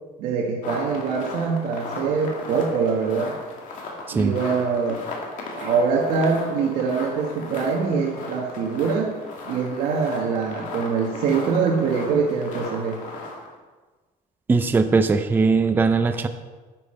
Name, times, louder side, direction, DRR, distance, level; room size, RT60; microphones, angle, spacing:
voice 1, 0.2-3.3 4.1-5.0 5.5-9.1 9.4-13.0, right 5 dB, 65° right, -1 dB, 1.3 m, -24 dB
sound 1, 0.6-13.6, left 3 dB, 55° left, 2.1 m, -36 dB
voice 2, 14.5-16.3, right 4 dB, 10° right, 8 dB, 0.5 m, -20 dB
10.5 x 8.5 x 4.3 m, 1.3 s
cardioid pair, 160°, 16 cm